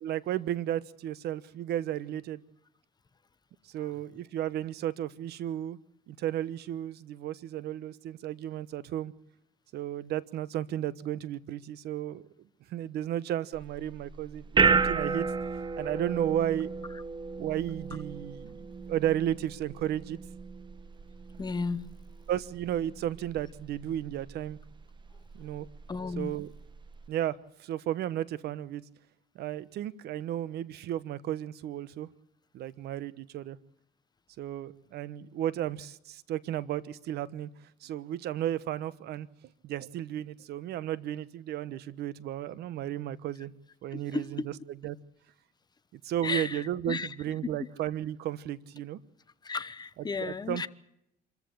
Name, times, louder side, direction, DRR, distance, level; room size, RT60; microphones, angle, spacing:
voice 1, 0.0-2.4 3.7-5.8 6.1-9.1 9.7-12.2 12.7-15.3 15.8-16.7 17.4-20.2 22.3-24.6 25.4-25.7 26.2-26.5 27.1-28.8 29.3-32.1 32.5-33.6 34.4-37.5 37.8-39.3 39.6-43.5 43.8-44.4 44.8-45.0 45.9-49.0 50.2-50.7, right 12 dB, 75° right, 1.1 m, -33 dB
sound 1, 13.5-27.1, right 5 dB, 30° right, 1.1 m, -33 dB
voice 2, 21.4-22.0 25.9-26.4 43.9-44.5 46.2-47.2 47.6-47.7 49.4-50.7, left 4 dB, 25° left, 1.1 m, -34 dB
26.5 x 14.5 x 8.5 m
cardioid pair, 110°, 17 cm